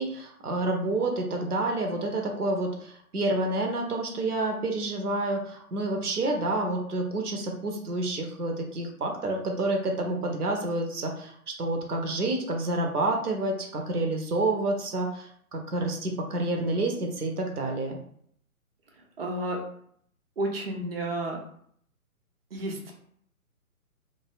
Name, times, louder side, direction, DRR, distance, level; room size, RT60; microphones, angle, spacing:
voice 1, 0.0-18.0, right 2 dB, 85° right, 2 dB, 0.7 m, -29 dB
voice 2, 19.2-19.6 20.4-21.4 22.5-22.9, right 1 dB, 45° right, 1 dB, 0.5 m, -31 dB
2.6 x 2.0 x 2.4 m, 0.64 s
figure-of-eight pair, 135°, 44 cm